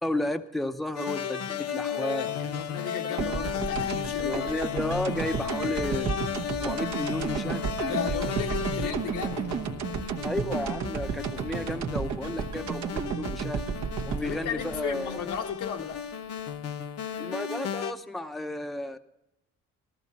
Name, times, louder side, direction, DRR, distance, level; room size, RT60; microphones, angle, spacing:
voice 1, 0.0-2.5 4.2-6.1 6.6-7.6 10.2-13.6 14.1-15.3 17.2-19.0, left 1 dB, ahead, 0.7 m, -33 dB
sound 1, 1.0-17.9, left 8 dB, 55° left, 0.9 m, -34 dB
voice 2, 2.4-4.5 7.9-9.5 14.2-16.0, left 7 dB, 85° left, 1.5 m, -35 dB
sound 2, 3.2-16.0, right 7 dB, 65° right, 1.1 m, -33 dB
14.0 x 13.5 x 4.1 m
cardioid pair, 90°, 30 cm